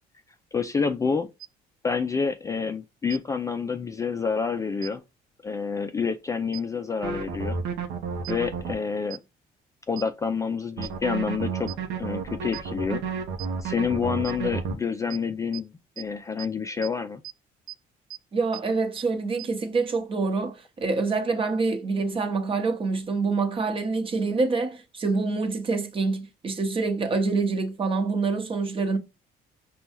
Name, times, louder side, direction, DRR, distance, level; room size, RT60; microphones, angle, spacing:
voice 1, 0.5-1.3 1.8-5.0 5.4-7.6 8.3-9.2 9.9-11.7 12.0-13.0 13.6-17.2, left 5 dB, 20° left, 0.3 m, -28 dB
sound 1, 1.4-1.5 3.1-3.2 4.8-4.9 6.5-6.6 8.2-8.3 9.1-9.2 10.0-10.1 10.8-10.9 11.7-11.8 12.5-12.6 13.4-13.5 14.2-14.3 15.1-15.2 15.5-15.6 16.0-16.1 16.4-16.5 16.8-16.9 17.2-17.3 17.7-17.8 18.1-18.2 18.5-18.6 19.0-19.1 19.4-19.5, right 16 dB, 50° right, 0.4 m, -38 dB
sound 2, 7.0-8.7 10.8-14.8, right 5 dB, 90° right, 0.7 m, -31 dB
voice 2, 18.3-29.0, right 4 dB, 30° right, 0.9 m, -26 dB
5.2 x 2.3 x 2.9 m
cardioid pair, 110°, 17 cm